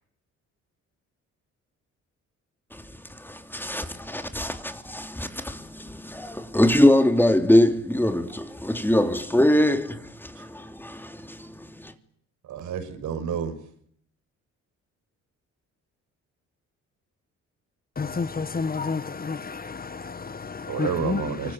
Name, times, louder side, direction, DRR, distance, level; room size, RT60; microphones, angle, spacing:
voice 1, 3.1-11.9, left 1 dB, 5° left, 3.2 m, -23 dB
voice 2, 12.4-13.6 20.7-21.5, right 7 dB, 75° right, 6.6 m, -30 dB
voice 3, 18.0-21.3, left 4 dB, 30° left, 1.5 m, -30 dB
25.0 x 25.0 x 9.1 m
cardioid pair, 90°, 30 cm